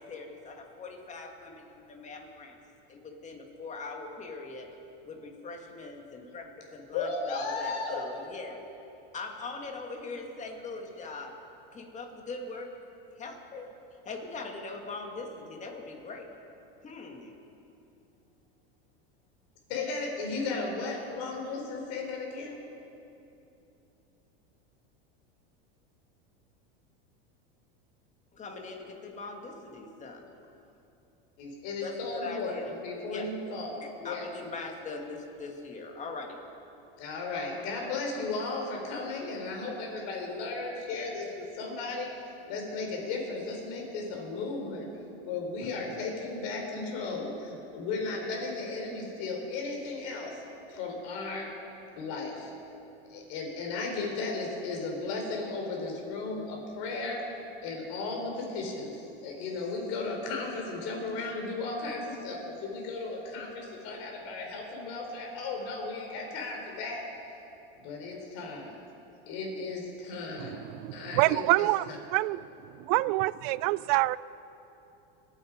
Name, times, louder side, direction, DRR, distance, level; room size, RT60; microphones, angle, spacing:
voice 1, 0.0-2.6 2.9-4.7 5.0-6.4 6.7-8.6 9.1-11.4 11.7-12.7 13.2-13.7 14.1-16.3 16.8-17.4 28.3-30.3 31.8-32.7 33.1-33.3 33.8-36.4, left 3 dB, 25° left, 2 dB, 2.1 m, -41 dB
voice 2, 6.9-8.1 19.7-22.6 31.4-34.2 37.0-42.1 42.5-44.9 45.2-50.4 50.7-51.5 52.0-52.5 53.1-67.1 67.8-68.7 69.3-70.6 70.9-71.7, left 3 dB, 60° left, 0 dB, 4.3 m, -35 dB
voice 3, 70.4-72.4 72.8-74.2, right 19 dB, 55° right, 19 dB, 0.4 m, -27 dB
25.5 x 8.8 x 5.1 m, 2.8 s
supercardioid pair, 125°, 30 cm